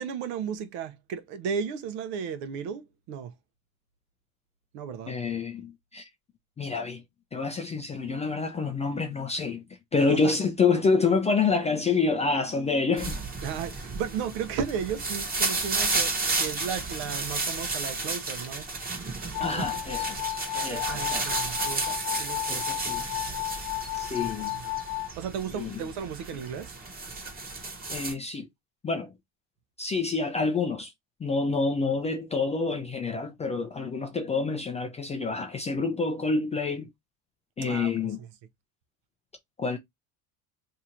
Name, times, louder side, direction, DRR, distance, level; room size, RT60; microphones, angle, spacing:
voice 1, 0.0-3.3 4.7-5.2 10.0-10.3 13.4-18.7 19.5-19.8 20.5-22.8 24.2-24.8 25.2-26.8 37.6-38.3, right 7 dB, 65° right, 0.8 m, -35 dB
voice 2, 5.1-6.1 6.6-7.0 7.3-9.6 9.9-13.2 19.4-20.2 20.6-21.3 22.5-23.1 23.9-24.6 25.5-25.8 27.9-28.5 28.8-29.1 29.8-30.9 31.2-36.9 37.6-38.2 39.6-39.8, left 4 dB, 15° left, 0.3 m, -27 dB
sound 1, 13.0-28.1, right 3 dB, 20° right, 1.1 m, -32 dB
sound 2, 19.3-25.1, left 19 dB, 85° left, 0.6 m, -33 dB
2.8 x 2.4 x 4.3 m
supercardioid pair, 120°, 44 cm